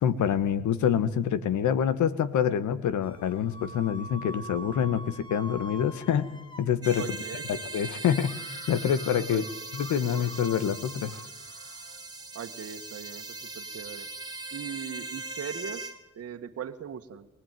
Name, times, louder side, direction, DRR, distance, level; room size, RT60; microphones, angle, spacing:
voice 1, 0.0-6.3 6.6-7.0 7.5-8.3 8.7-9.4 9.7-11.2, left 8 dB, 75° left, 13 dB, 1.9 m, -26 dB
sound 1, 3.0-6.7 8.2-12.1, equal, 15° left, 2.9 m, -45 dB
sound 2, 6.8-16.0, right 3 dB, 15° right, 3.2 m, -40 dB
voice 2, 7.0-7.6 9.3-9.4 12.3-14.1 14.5-17.3, right 8 dB, 55° right, 5 dB, 1.9 m, -40 dB
24.0 x 19.0 x 9.4 m, 0.93 s
cardioid pair, 90°, 30 cm